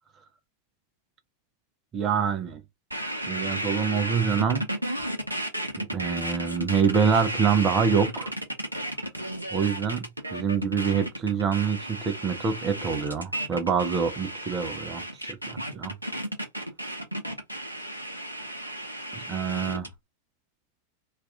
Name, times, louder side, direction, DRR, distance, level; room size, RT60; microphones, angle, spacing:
voice 1, 1.9-2.6 3.3-4.7 5.8-8.3 9.5-15.0 15.3-16.0 19.1-19.9, right 6 dB, 30° right, 0.5 m, -26 dB
sound 1, 2.9-19.9, right 1 dB, 85° right, 0.6 m, -33 dB
2.4 x 2.3 x 3.4 m
figure-of-eight pair, 90°, 0 cm